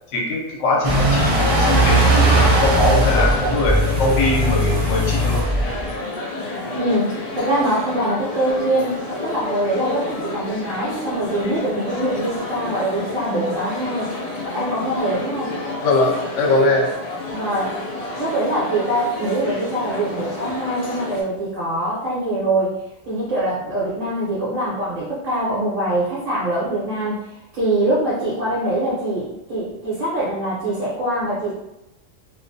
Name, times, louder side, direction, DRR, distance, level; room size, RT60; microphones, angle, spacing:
voice 1, 0.1-5.4 15.8-16.9, left 2 dB, 75° left, -1 dB, 0.9 m, -21 dB
sound 1, 0.8-5.9, right 1 dB, 65° right, 0.3 m, -18 dB
sound 2, 2.2-21.2, left 2 dB, 90° left, 0.3 m, -30 dB
voice 2, 6.7-14.1 14.4-15.5 17.3-17.8 18.2-22.8 23.1-31.5, right 1 dB, 50° right, -10 dB, 0.8 m, -23 dB
2.4 x 2.1 x 2.6 m, 0.89 s
omnidirectional pair, 1.3 m